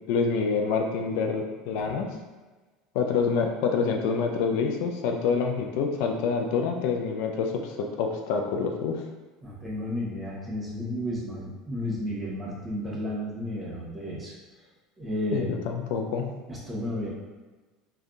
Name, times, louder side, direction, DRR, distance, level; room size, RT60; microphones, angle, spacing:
voice 1, 0.1-2.1 2.9-9.0 15.3-16.2, left 5 dB, 65° left, 3 dB, 0.3 m, -27 dB
voice 2, 9.4-14.4 15.0-15.5 16.5-17.1, left 1 dB, 15° right, -4 dB, 1.1 m, -32 dB
3.4 x 2.2 x 2.6 m, 1.3 s
hypercardioid pair, 75°, 0 cm